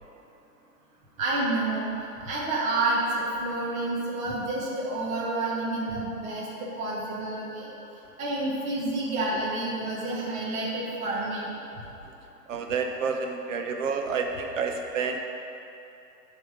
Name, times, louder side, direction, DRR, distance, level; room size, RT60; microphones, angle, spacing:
voice 1, 1.2-1.9 2.2-7.7 8.2-11.5, right 2 dB, 15° right, -6 dB, 1.0 m, -29 dB
voice 2, 12.5-15.2, right 5 dB, 50° right, 3 dB, 0.9 m, -29 dB
8.6 x 3.5 x 6.7 m, 2.9 s
hypercardioid pair, 145°, 49 cm